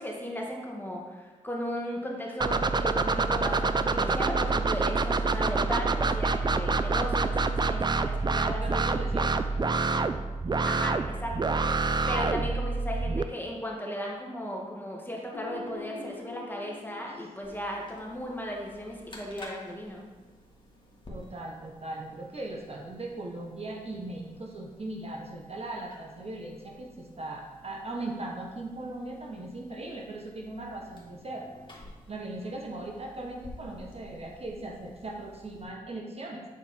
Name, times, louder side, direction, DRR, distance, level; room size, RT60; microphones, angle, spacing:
voice 1, 0.0-9.0 10.7-11.6 12.1-20.0, equal, 15° left, -1 dB, 1.8 m, -36 dB
sound 1, 2.4-13.2, right 3 dB, 30° right, 0.4 m, -27 dB
voice 2, 8.6-9.3 21.1-31.5 32.1-36.5, right 2 dB, 50° right, 0 dB, 1.3 m, -38 dB
sound 2, 15.3-18.7, left 4 dB, 90° left, 0.6 m, -45 dB
sound 3, 17.4-35.6, left 1 dB, 35° left, 1.8 m, -52 dB
8.8 x 4.4 x 4.3 m, 1.3 s
cardioid pair, 55°, 14 cm